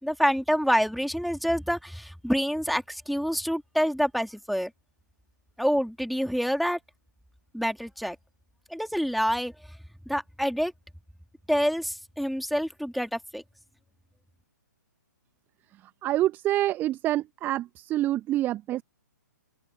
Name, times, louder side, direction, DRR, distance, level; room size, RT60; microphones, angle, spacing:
voice 1, 0.0-4.7 5.6-6.8 7.5-8.2 8.7-9.5 10.1-10.7 11.5-13.4, equal, ahead, 3.1 m, -27 dB
voice 2, 16.0-18.8, right 14 dB, 20° right, 1.2 m, -26 dB
open air
figure-of-eight pair, 125°, 10 cm